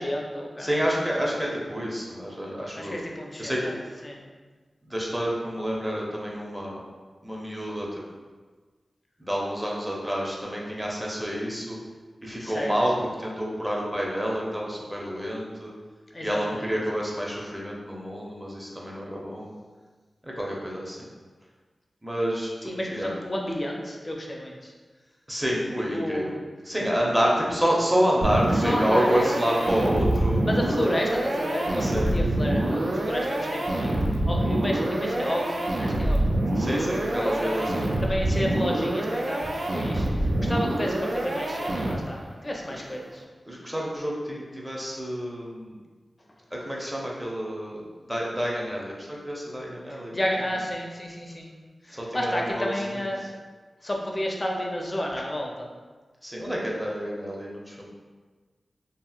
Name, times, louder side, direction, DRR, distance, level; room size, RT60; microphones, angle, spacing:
voice 1, 0.0-0.8 2.7-3.7 4.0-4.2 12.4-12.7 16.1-16.7 22.6-24.7 25.9-26.4 28.5-29.4 30.4-37.7 38.0-43.2 49.9-51.5 51.8-53.2 53.8-55.7, equal, 30° left, 0 dB, 0.5 m, -31 dB
voice 2, 0.6-3.0 3.4-3.7 4.8-6.8 7.2-7.9 9.2-11.8 12.2-15.7 16.2-19.6 20.2-21.1 22.0-22.5 22.9-23.1 25.3-26.3 26.7-30.4 31.8-32.1 36.6-37.9 43.5-45.7 46.5-47.8 48.1-50.2 51.9-53.1 56.2-57.9, equal, 10° right, -3 dB, 0.7 m, -28 dB
sound 1, 28.2-42.3, right 1 dB, 70° right, 0.4 m, -26 dB
2.8 x 2.8 x 2.4 m, 1.4 s
cardioid pair, 55°, 0 cm